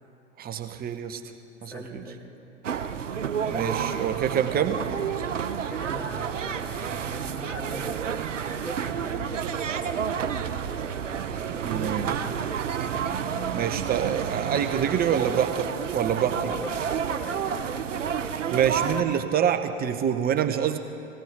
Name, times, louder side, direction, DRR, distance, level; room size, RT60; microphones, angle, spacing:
voice 1, 0.4-1.2 1.6-2.0 3.4-4.8 11.5-12.3 13.5-16.5 18.5-20.8, right 9 dB, 25° right, 8 dB, 0.9 m, -26 dB
voice 2, 1.6-2.3 5.7-10.1 16.2-17.8, right 1 dB, 5° left, -2 dB, 2.6 m, -41 dB
sound 1, 2.6-19.0, right 7 dB, 80° right, 0.7 m, -30 dB
20.5 x 17.0 x 3.8 m, 2.7 s
figure-of-eight pair, 90°, 37 cm